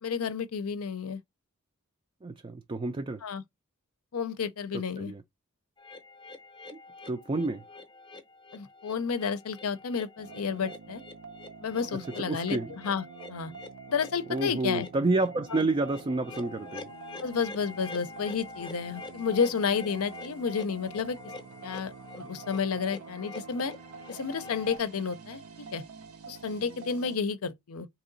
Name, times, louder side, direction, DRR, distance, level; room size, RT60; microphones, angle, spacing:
voice 1, 0.0-1.2 3.2-3.4 4.1-5.1 8.5-11.0 11.6-12.6 12.8-13.5 13.9-14.9 15.5-15.6 17.2-21.2 21.6-23.7 24.1-25.4 25.7-25.8 26.3-27.9, left 6 dB, 75° left, 0.6 m, -31 dB
voice 2, 2.2-3.2 4.7-5.2 6.7-6.8 7.1-7.6 12.2-12.7 14.3-16.9, right 2 dB, 25° right, 0.4 m, -29 dB
sound 1, 5.8-24.8, left 3 dB, 20° left, 0.6 m, -46 dB
sound 2, 10.2-27.2, right 5 dB, 75° right, 0.7 m, -47 dB
3.8 x 2.9 x 3.9 m
head